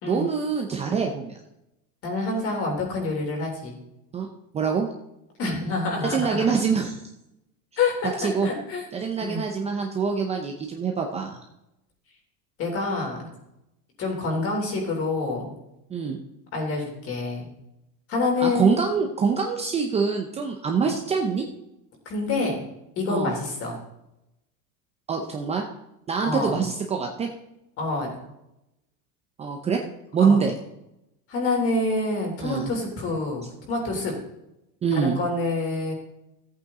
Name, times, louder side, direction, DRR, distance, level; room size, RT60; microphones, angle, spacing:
voice 1, 0.1-1.4 4.1-4.3 4.5-4.9 6.0-7.0 8.2-8.5 8.9-11.4 15.9-16.2 18.4-21.5 23.1-23.4 25.1-25.6 26.1-27.3 29.4-29.8 30.1-30.5 32.4-32.7 34.8-35.2, right 5 dB, 15° right, 2 dB, 0.7 m, -25 dB
voice 2, 2.0-3.7 5.4-6.5 7.8-8.8 9.2-9.4 12.6-13.3 14.0-15.4 16.5-17.5 18.1-18.8 22.0-22.6 23.0-23.8 26.2-26.6 27.8-28.1 30.2-30.4 31.3-34.1 34.9-35.9, left 3 dB, 35° left, 0 dB, 3.4 m, -27 dB
14.0 x 8.6 x 3.8 m, 0.88 s
supercardioid pair, 160°, 40 cm